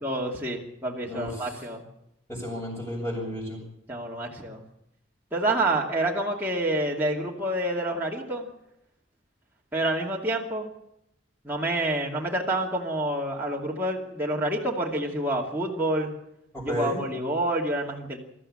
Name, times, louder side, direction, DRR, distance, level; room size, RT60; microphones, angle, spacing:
voice 1, 0.0-1.8 3.9-4.6 5.3-8.5 9.7-10.7 11.4-16.1 16.6-18.2, right 1 dB, 10° right, -3 dB, 2.5 m, -28 dB
voice 2, 1.0-1.6 2.3-3.6 16.5-17.0, left 1 dB, 15° left, -8 dB, 7.5 m, -32 dB
22.5 x 14.0 x 8.8 m, 0.83 s
head